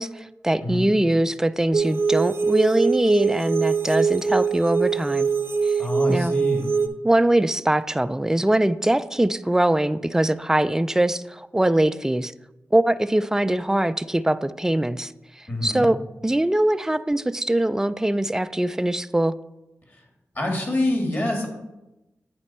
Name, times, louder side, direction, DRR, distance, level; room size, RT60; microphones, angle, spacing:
voice 1, 0.0-5.3 5.6-5.8 6.1-6.3 7.0-12.3 12.7-15.1 15.6-16.0 16.2-19.3, right 1 dB, 10° right, 13 dB, 0.3 m, -22 dB
sound 1, 1.7-6.9, right 5 dB, 45° right, 0.7 m, -23 dB
voice 2, 5.8-6.7 15.5-15.8 20.3-21.5, left 1 dB, 35° left, 1 dB, 2.3 m, -25 dB
9.0 x 4.4 x 4.3 m, 0.98 s
cardioid pair, 40°, 6 cm